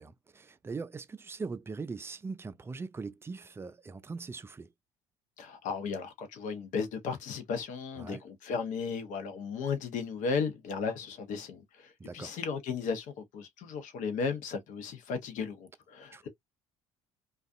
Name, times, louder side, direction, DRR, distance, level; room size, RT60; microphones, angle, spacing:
voice 1, 0.0-4.7 8.0-8.2 12.0-12.3 16.1-16.2, right 4 dB, 15° right, 0.3 m, -41 dB
voice 2, 5.4-16.3, left 5 dB, 55° left, 0.9 m, -35 dB
2.5 x 2.3 x 2.4 m
figure-of-eight pair, 55°, 16 cm